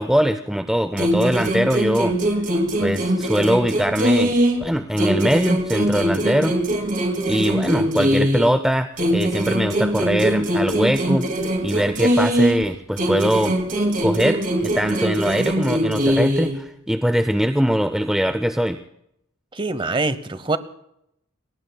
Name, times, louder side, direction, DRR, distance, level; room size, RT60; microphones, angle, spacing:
voice 1, 0.0-2.1 2.8-6.6 7.3-11.3 11.6-13.6 14.0-18.8, equal, ahead, 8 dB, 0.5 m, -21 dB
sound 1, 1.0-4.7 5.0-8.6 9.0-12.7 13.0-16.6, right 1 dB, 40° right, 2.2 m, -22 dB
voice 2, 19.5-20.6, right 3 dB, 25° right, 13 dB, 0.8 m, -24 dB
28.5 x 21.0 x 2.3 m, 0.79 s
head